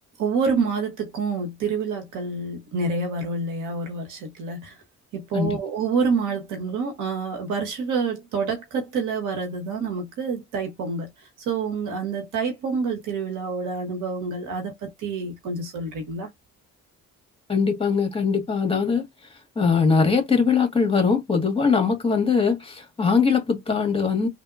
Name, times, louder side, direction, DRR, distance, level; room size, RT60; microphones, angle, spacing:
voice 1, 0.2-4.7 5.1-11.1 11.5-16.3, right 4 dB, 90° right, 1.4 m, -27 dB
voice 2, 17.5-19.0 19.5-24.3, left 5 dB, 20° left, 1.7 m, -21 dB
3.5 x 2.6 x 2.6 m
cardioid pair, 90°, 30 cm